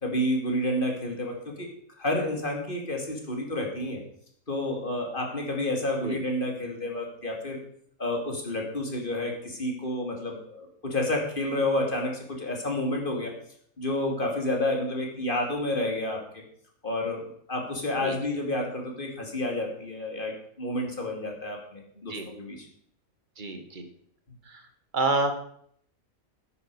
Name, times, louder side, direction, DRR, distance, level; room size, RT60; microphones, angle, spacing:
voice 1, 0.0-1.7 2.0-4.0 4.5-7.6 8.0-13.3 13.8-16.2 16.8-17.2 17.5-22.7, left 1 dB, 40° left, 1 dB, 2.6 m, -30 dB
voice 2, 23.4-23.8 24.5-24.6 24.9-25.3, right 3 dB, 35° right, 6 dB, 1.6 m, -28 dB
13.5 x 9.8 x 4.7 m, 0.64 s
omnidirectional pair, 1.4 m